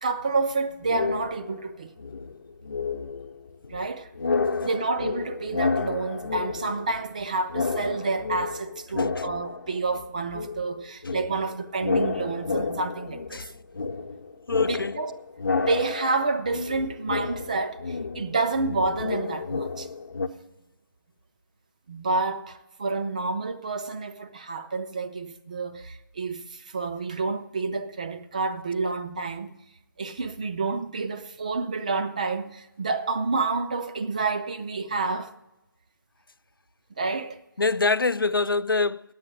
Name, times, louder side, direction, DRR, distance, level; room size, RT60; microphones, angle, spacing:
voice 1, 0.0-1.9 3.7-4.1 4.6-13.4 14.7-15.2 15.6-19.9 21.9-29.5 30.0-35.3 37.0-37.4, right 3 dB, 20° right, 0.4 m, -29 dB
sound 1, 0.8-1.7 2.0-7.2 7.5-10.0 10.3-20.3, left 4 dB, 55° left, 0.9 m, -30 dB
voice 2, 14.5-14.9 37.6-39.0, left 3 dB, 85° left, 0.4 m, -25 dB
10.0 x 7.8 x 7.7 m
figure-of-eight pair, 155°, 11 cm